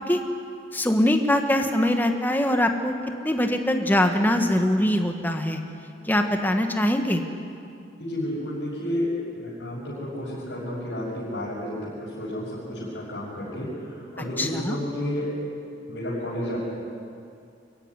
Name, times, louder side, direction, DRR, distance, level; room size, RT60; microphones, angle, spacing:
voice 1, 0.7-3.0 3.2-5.6 6.1-7.2 14.4-14.7, left 1 dB, 10° left, 5 dB, 1.6 m, -22 dB
voice 2, 8.0-9.1 9.4-15.3 15.9-16.6, equal, 80° left, -9 dB, 6.4 m, -31 dB
25.0 x 15.0 x 9.9 m, 2.5 s
head